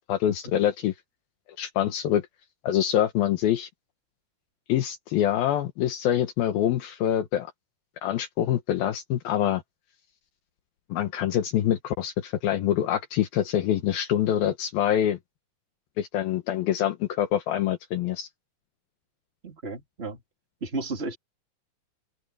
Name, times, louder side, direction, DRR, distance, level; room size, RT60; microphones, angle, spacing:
voice 1, 0.1-0.9 1.6-2.3 2.6-3.7 4.7-7.5 8.0-9.6 10.9-15.2 16.0-18.3, left 11 dB, 75° left, 2.9 m, -25 dB
voice 2, 19.4-20.2 20.6-21.2, right 3 dB, 15° right, 2.9 m, -33 dB
open air
omnidirectional pair, 4.5 m